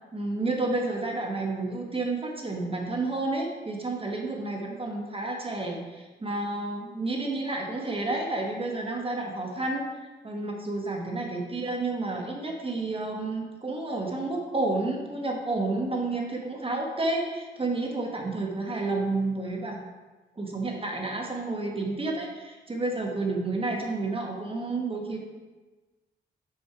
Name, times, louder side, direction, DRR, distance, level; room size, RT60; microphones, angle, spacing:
voice 1, 0.1-9.8 10.2-19.8 20.4-25.2, right 2 dB, 30° right, 0 dB, 1.4 m, -30 dB
5.1 x 4.9 x 4.6 m, 1.2 s
supercardioid pair, 50°, 20 cm